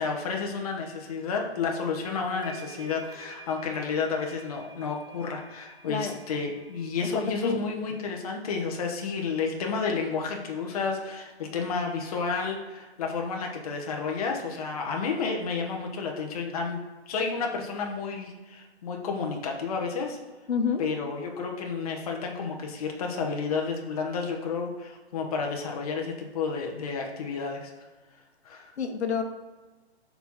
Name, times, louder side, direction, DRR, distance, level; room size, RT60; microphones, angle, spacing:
voice 1, 0.0-16.8 17.1-20.2 20.8-27.7 28.4-28.7, left 5 dB, 35° left, 1 dB, 0.8 m, -31 dB
sound 1, 1.8-1.9 2.4-7.3, right 4 dB, 20° right, 0.4 m, -49 dB
voice 2, 5.9-6.2 7.0-7.6 20.5-20.9 28.8-29.2, left 6 dB, 75° left, 6 dB, 1.0 m, -28 dB
4.6 x 4.2 x 5.4 m, 1.2 s
hypercardioid pair, 160°, 33 cm